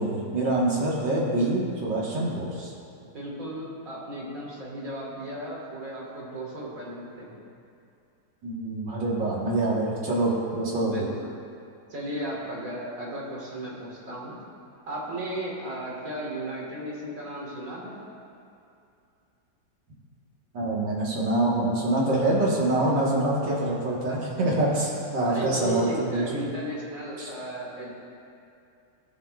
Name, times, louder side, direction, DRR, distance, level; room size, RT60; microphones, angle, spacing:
voice 1, 0.0-2.7 8.4-11.0 20.5-26.4 27.2-27.3, right 2 dB, 70° right, -4 dB, 2.2 m, -25 dB
voice 2, 3.1-7.4 10.8-11.3 11.9-14.4 14.9-17.9 24.1-24.8 25.3-27.9, right 1 dB, 45° right, -4 dB, 2.0 m, -35 dB
16.5 x 6.3 x 2.4 m, 2.6 s
omnidirectional pair, 2.1 m